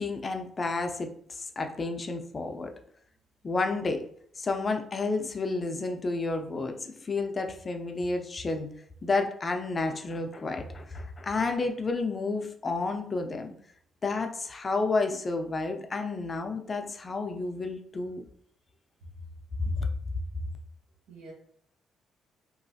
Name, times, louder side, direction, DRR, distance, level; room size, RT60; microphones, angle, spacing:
voice 1, 0.0-2.7 3.4-4.0 4.4-8.7 9.0-13.5 14.0-18.2 19.8-19.9, left 3 dB, 35° left, 5 dB, 0.4 m, -31 dB
voice 2, 19.0-19.2 19.7-19.8 21.1-21.3, left 1 dB, 80° right, -1 dB, 0.9 m, -39 dB
3.0 x 2.3 x 2.6 m, 0.63 s
cardioid pair, 90°, 0 cm